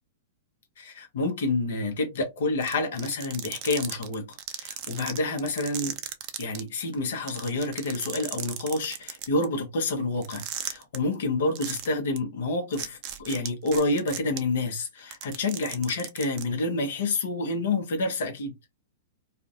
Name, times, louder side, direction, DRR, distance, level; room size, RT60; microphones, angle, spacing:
voice 1, 0.8-6.0 6.4-18.5, left 2 dB, 65° left, 0.7 m, -28 dB
sound 1, 2.6-6.6 6.9-7.0 7.3-9.4 10.2-11.0 11.5-11.9 12.2-12.3 12.7-14.4 15.0-16.4, right 12 dB, 45° right, 0.4 m, -35 dB
2.4 x 2.1 x 2.4 m
figure-of-eight pair, 105°, 0 cm